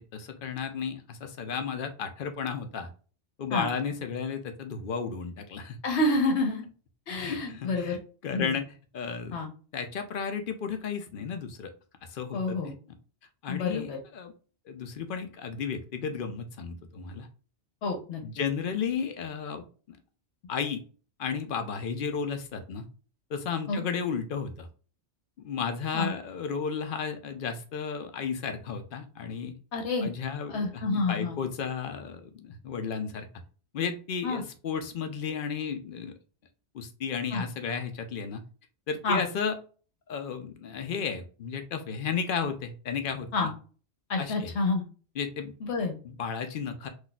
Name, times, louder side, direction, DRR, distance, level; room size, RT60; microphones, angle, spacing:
voice 1, 0.1-2.9 3.4-5.8 7.2-8.7 8.9-9.4 9.7-11.7 12.1-12.6 13.4-14.3 14.7-17.3 18.2-20.0 20.5-20.8 21.2-22.9 23.3-24.7 25.4-29.5 30.0-33.3 33.7-36.1 36.7-38.4 38.9-39.6 40.1-43.5 44.2-44.5 45.2-45.5 46.0-46.9, left 6 dB, 60° left, 7 dB, 0.6 m, -33 dB
voice 2, 5.8-6.6 7.1-8.0 8.3-8.5 9.3-9.5 12.3-12.7 13.5-14.0 17.8-18.2 23.7-23.8 25.9-26.1 29.7-30.1 30.5-31.4 34.2-34.4 37.3-37.4 39.0-39.2 43.3-43.5 44.1-44.8 45.6-45.9, left 2 dB, 75° left, 3 dB, 1.1 m, -28 dB
3.9 x 2.4 x 2.2 m, 0.38 s
omnidirectional pair, 1.2 m